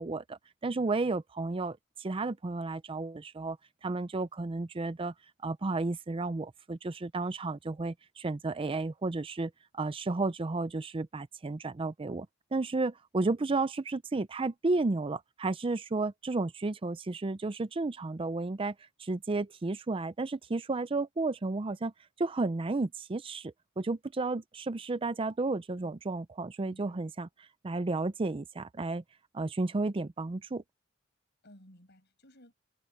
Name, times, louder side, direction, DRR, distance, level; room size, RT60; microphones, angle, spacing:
voice 1, 0.0-5.1 5.4-12.3 12.5-21.9 22.2-29.0 29.3-30.6, right 3 dB, 25° right, 0.5 m, -32 dB
voice 2, 26.6-27.0 31.4-32.5, equal, 55° left, 7.5 m, -57 dB
head